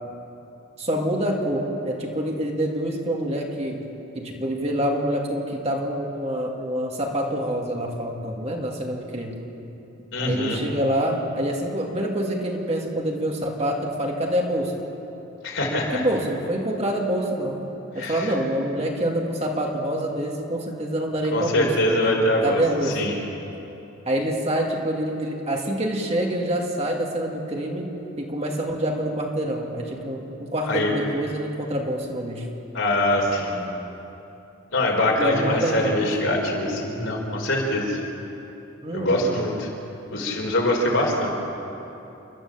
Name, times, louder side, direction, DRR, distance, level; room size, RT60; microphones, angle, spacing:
voice 1, 0.8-3.8 4.1-9.4 10.2-14.7 15.6-17.6 17.9-23.0 24.1-32.5 35.2-36.1 38.8-39.3, right 1 dB, 30° right, 0 dB, 2.5 m, -26 dB
voice 2, 10.1-10.6 15.4-16.1 18.0-18.3 21.3-22.6 22.9-23.1 30.6-31.0 32.7-33.6 34.7-38.0 38.9-39.7 40.1-41.3, left 1 dB, 70° left, 0 dB, 4.2 m, -23 dB
29.5 x 12.5 x 7.4 m, 2.9 s
head